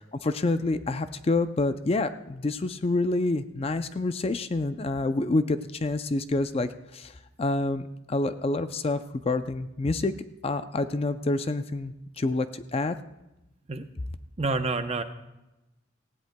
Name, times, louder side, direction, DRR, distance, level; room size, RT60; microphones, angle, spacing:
voice 1, 0.2-7.1 7.4-10.1 10.4-13.0, left 2 dB, 30° left, 11 dB, 0.4 m, -27 dB
voice 2, 14.4-15.0, right 3 dB, 30° right, 8 dB, 0.7 m, -28 dB
18.5 x 16.0 x 2.2 m, 0.96 s
head